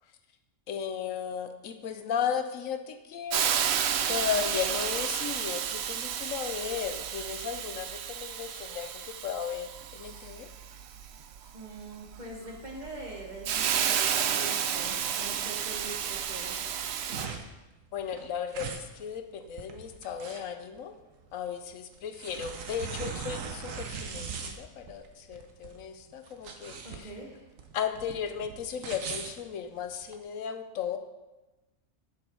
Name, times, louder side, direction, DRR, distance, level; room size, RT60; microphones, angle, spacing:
voice 1, 0.7-3.5 4.1-10.5 17.9-21.0 21.3-27.1 27.7-31.0, left 8 dB, 90° left, 7 dB, 1.2 m, -35 dB
Hiss, 3.3-17.3, right 8 dB, 65° right, 0.8 m, -31 dB
voice 2, 11.5-16.8 26.8-27.5, right 2 dB, 35° right, -1 dB, 1.6 m, -43 dB
sound 1, 16.7-30.2, right 6 dB, 85° right, 1.3 m, -40 dB
7.9 x 7.5 x 4.6 m, 1.1 s
omnidirectional pair, 1.3 m